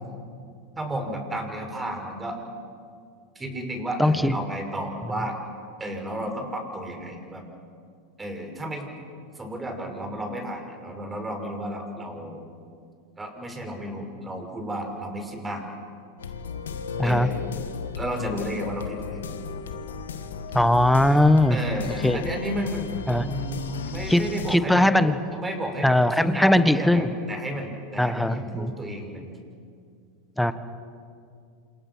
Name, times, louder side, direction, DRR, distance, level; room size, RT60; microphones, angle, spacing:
voice 1, 0.8-2.4 3.3-5.4 5.8-7.4 8.2-8.9 9.3-12.4 13.2-15.6 17.0-17.3 18.0-19.2 21.5-24.9 25.3-29.4, right 1 dB, 15° right, 3 dB, 6.0 m, -32 dB
voice 2, 4.0-4.3 17.0-17.3 20.5-21.6 22.0-22.2 23.1-23.3 24.1-24.2 24.5-25.2 25.8-27.1 28.0-28.7 30.4-30.5, left 1 dB, ahead, 11 dB, 1.3 m, -20 dB
sound 1, 16.2-24.6, left 6 dB, 85° left, 1.7 m, -35 dB
28.0 x 27.5 x 6.3 m, 2.3 s
hypercardioid pair, 105°, 0 cm